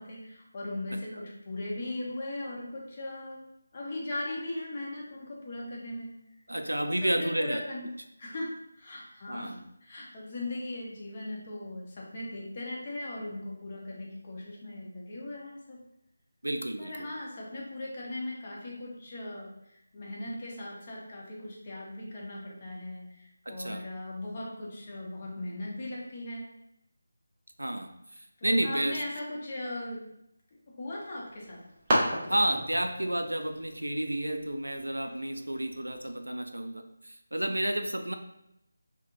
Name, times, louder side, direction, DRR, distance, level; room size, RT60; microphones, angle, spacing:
voice 1, 0.0-3.4 3.7-6.1 6.8-7.9 8.2-9.6 9.8-15.8 16.8-26.4 28.4-30.1 30.8-31.6, left 1 dB, 35° left, -4 dB, 0.7 m, -38 dB
voice 2, 6.5-7.6 9.3-9.6 16.4-16.9 23.5-23.8 27.6-29.0 32.3-38.1, right 1 dB, 85° right, 6 dB, 0.3 m, -31 dB
sound 1, 31.0-36.1, equal, 25° right, 0.6 m, -35 dB
2.9 x 2.1 x 2.5 m, 0.81 s
figure-of-eight pair, 160°, 0 cm